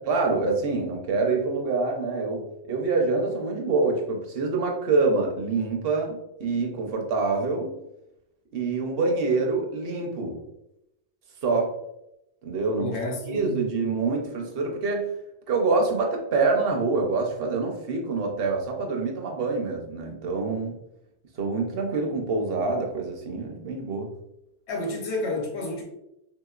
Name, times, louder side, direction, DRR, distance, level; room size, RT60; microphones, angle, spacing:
voice 1, 0.0-7.8 8.5-10.4 11.4-11.8 12.4-13.0 13.2-15.1 15.5-20.8 21.4-24.1, right 3 dB, 60° right, 2 dB, 0.8 m, -26 dB
voice 2, 12.8-13.6 24.7-25.8, left 2 dB, 70° left, 1 dB, 1.1 m, -30 dB
3.3 x 2.9 x 2.3 m, 0.84 s
omnidirectional pair, 1.2 m